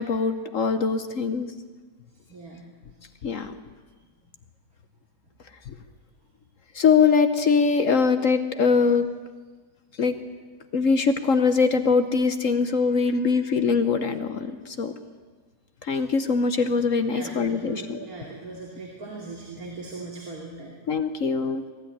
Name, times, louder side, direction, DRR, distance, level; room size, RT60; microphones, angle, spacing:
voice 1, 0.0-1.5 3.2-3.5 5.7-5.8 6.7-9.1 10.0-10.1 10.7-14.9 15.8-18.0 20.9-21.6, left 5 dB, 60° left, 9 dB, 1.3 m, -22 dB
voice 2, 2.3-2.7 12.7-13.3 17.1-20.7, right 3 dB, 65° right, -2 dB, 3.3 m, -40 dB
22.5 x 13.5 x 10.0 m, 1.4 s
omnidirectional pair, 1.6 m